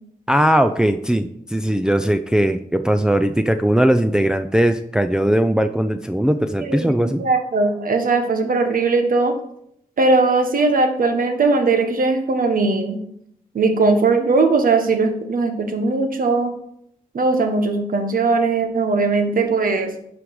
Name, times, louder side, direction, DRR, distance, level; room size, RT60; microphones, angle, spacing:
voice 1, 0.3-7.2, right 1 dB, 5° right, 8 dB, 0.5 m, -19 dB
voice 2, 6.6-9.3 10.0-13.0 13.5-16.5 17.1-19.9, right 3 dB, 75° right, 5 dB, 1.4 m, -19 dB
11.0 x 5.1 x 4.8 m, 0.72 s
cardioid pair, 70°, 15 cm